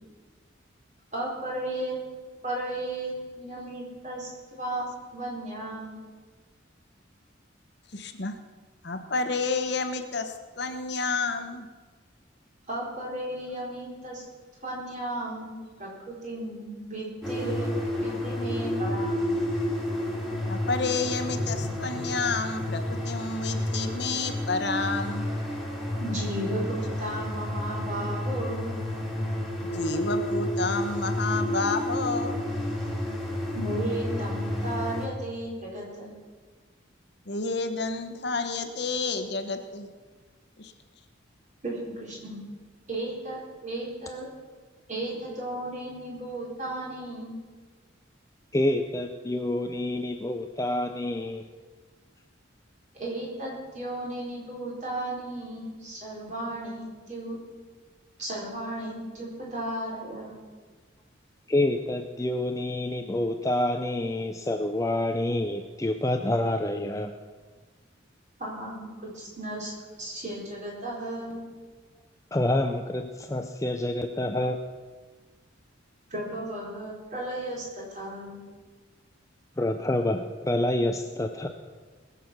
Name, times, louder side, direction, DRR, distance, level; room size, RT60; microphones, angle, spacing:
voice 1, 1.1-2.0 2.4-4.8 5.1-6.0 12.7-14.2 14.6-19.3 26.0-28.7 33.5-36.1 41.6-42.4 42.9-44.3 44.9-47.4 53.0-57.4 58.2-60.4 68.4-69.7 70.0-71.4 76.1-78.4, right 1 dB, 40° right, -4 dB, 4.3 m, -34 dB
voice 2, 7.9-8.4 8.8-11.7 20.5-25.2 29.7-32.4 37.3-39.9 40.6-40.7, left 3 dB, 55° left, 6 dB, 1.1 m, -30 dB
sound 1, 17.2-35.1, left 1 dB, ahead, 2.4 m, -30 dB
voice 3, 48.5-51.4 61.5-67.2 72.3-74.6 79.6-81.5, left 1 dB, 15° left, 6 dB, 0.5 m, -27 dB
20.5 x 7.2 x 6.1 m, 1.4 s
head